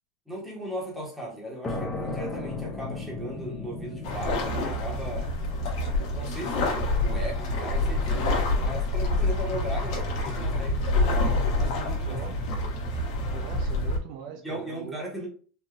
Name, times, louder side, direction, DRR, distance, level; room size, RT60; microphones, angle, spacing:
voice 1, 0.3-5.3 6.1-11.3 11.6-12.2 14.4-15.3, equal, 5° right, 0.9 m, -37 dB
sound 1, 1.6-9.0, left 3 dB, 15° left, 0.5 m, -38 dB
sound 2, 4.0-14.0, left 2 dB, 65° left, 0.9 m, -27 dB
voice 2, 13.3-15.0, right 7 dB, 55° right, 0.4 m, -41 dB
3.3 x 2.6 x 2.3 m
supercardioid pair, 170°, 3 cm